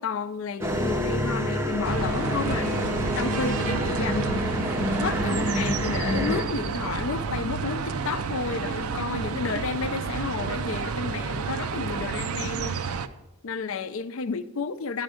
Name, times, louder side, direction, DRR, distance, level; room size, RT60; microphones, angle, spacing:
voice 1, 0.0-2.7 3.2-4.6 5.0-12.8 13.4-15.0, left 4 dB, 65° left, 12 dB, 0.5 m, -31 dB
sound 1, 0.6-6.4, equal, 10° right, 0.5 m, -27 dB
sound 2, 1.8-13.1, right 5 dB, 80° right, 0.5 m, -30 dB
10.5 x 6.4 x 5.0 m, 0.99 s
head